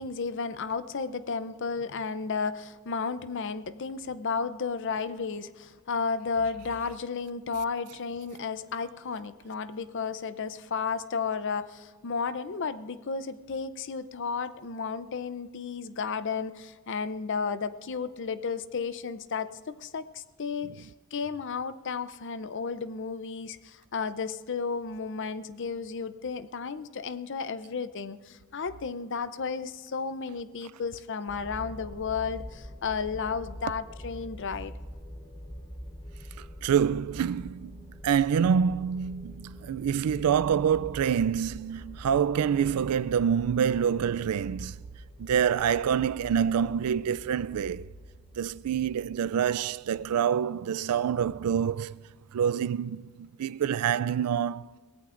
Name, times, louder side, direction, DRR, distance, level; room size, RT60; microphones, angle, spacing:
voice 1, 0.0-34.7, left 5 dB, 55° left, 0.6 m, -33 dB
sound 1, 31.3-50.2, equal, 20° left, 1.0 m, -45 dB
voice 2, 36.4-44.8 45.2-47.9 48.4-52.0 52.3-54.7, right 8 dB, 85° right, 0.3 m, -26 dB
22.5 x 17.0 x 2.5 m
head